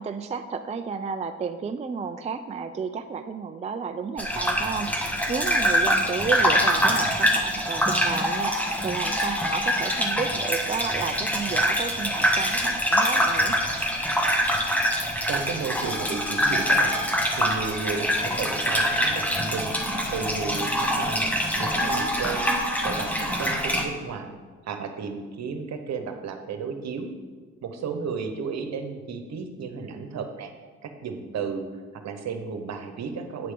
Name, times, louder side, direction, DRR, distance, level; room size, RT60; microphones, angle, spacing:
voice 1, 0.0-13.6, right 5 dB, 20° right, 8 dB, 0.4 m, -32 dB
Gurgling / Bathtub (filling or washing), 4.2-23.8, equal, 5° left, 1.2 m, -24 dB
voice 2, 15.3-17.0 17.3-24.3 24.6-27.1 27.6-30.5 30.8-31.6 31.9-33.5, right 5 dB, 60° right, 6 dB, 1.1 m, -33 dB
8.8 x 6.6 x 3.8 m, 1.4 s
supercardioid pair, 75°, 31 cm